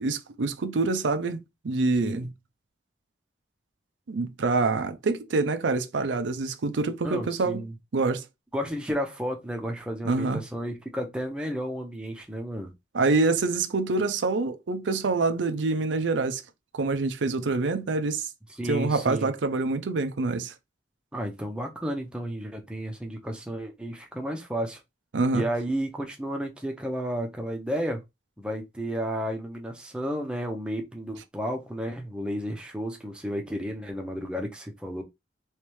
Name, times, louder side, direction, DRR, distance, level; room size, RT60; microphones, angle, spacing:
voice 1, 0.0-2.3 4.1-7.6 7.9-8.2 10.0-10.4 12.9-16.4 16.7-18.3 18.7-20.5 25.1-25.4, right 3 dB, 80° right, 0.5 m, -26 dB
voice 2, 7.0-7.7 8.5-12.7 18.5-19.3 21.1-24.8 25.3-28.0 28.4-35.0, equal, 5° right, 0.7 m, -32 dB
3.2 x 3.2 x 3.0 m
head